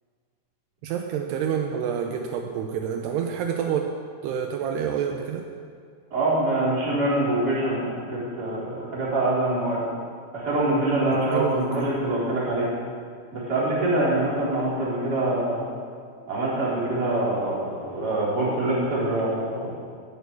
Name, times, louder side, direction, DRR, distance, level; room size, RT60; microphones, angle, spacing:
voice 1, 0.8-3.9 4.2-5.5 11.1-12.0, right 8 dB, 85° right, 3 dB, 2.3 m, -28 dB
voice 2, 6.1-9.8 10.3-12.7 13.3-15.6 16.3-19.7, right 2 dB, 20° right, -7 dB, 4.1 m, -24 dB
11.0 x 10.5 x 9.3 m, 2.2 s
omnidirectional pair, 5.7 m